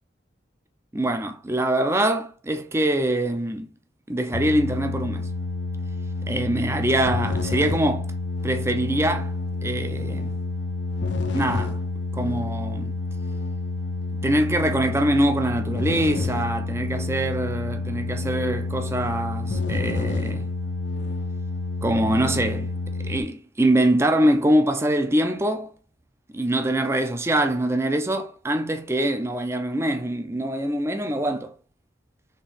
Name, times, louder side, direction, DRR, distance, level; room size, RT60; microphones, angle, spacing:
voice 1, 0.9-3.7 4.1-5.3 6.3-8.1 8.4-9.3 9.6-10.4 11.3-11.8 12.1-12.9 14.2-20.5 21.8-22.7 23.0-25.7 26.3-31.5, right 1 dB, 15° right, 0.5 m, -24 dB
sound 1, 4.3-23.2, left 3 dB, 70° left, 0.6 m, -28 dB
4.4 x 3.5 x 3.4 m
head